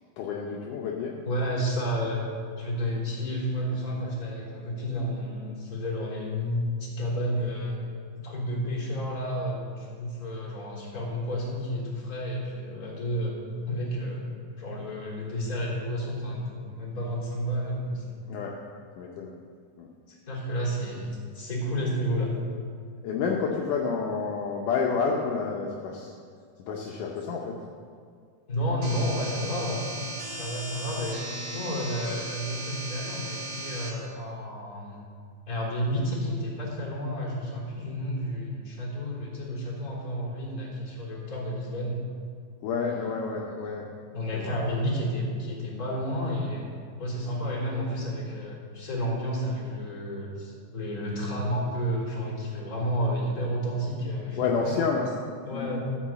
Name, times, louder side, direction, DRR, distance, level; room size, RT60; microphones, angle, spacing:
voice 1, 0.2-1.2 18.3-18.6 19.0-19.4 19.8-19.9 23.0-26.1 26.7-27.5 42.6-43.9 44.3-44.6 54.4-55.1 55.5-55.8, left 5 dB, 75° left, -1 dB, 2.3 m, -29 dB
voice 2, 1.2-2.3 2.6-7.8 8.2-13.3 13.7-14.3 14.6-18.3 20.1-22.3 28.5-29.9 30.3-31.2 31.5-35.0 35.5-42.0 42.8-43.1 43.4-43.8 44.1-46.7 47.0-54.8 55.4-55.8, equal, 25° left, -5 dB, 3.8 m, -31 dB
sound 1, 28.8-33.9, right 1 dB, 55° right, 1.2 m, -37 dB
14.0 x 5.7 x 7.4 m, 2.1 s
omnidirectional pair, 3.9 m